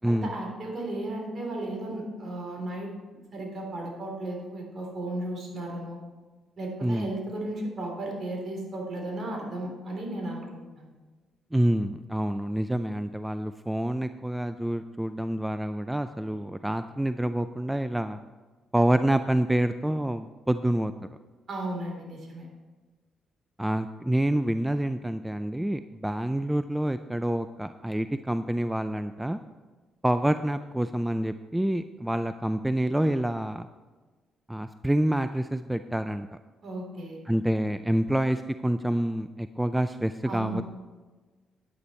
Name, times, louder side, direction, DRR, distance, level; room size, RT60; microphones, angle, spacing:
voice 1, 0.0-6.0 6.6-10.5 10.7-10.9 21.5-22.5 36.6-37.2 40.2-40.6, right 1 dB, 50° right, 0 dB, 3.4 m, -35 dB
voice 2, 11.5-18.2 18.7-20.9 23.6-29.4 30.0-33.6 34.5-36.3 37.3-40.6, right 1 dB, 5° right, 10 dB, 0.4 m, -27 dB
10.0 x 9.7 x 4.3 m, 1.3 s
cardioid pair, 90°, 0 cm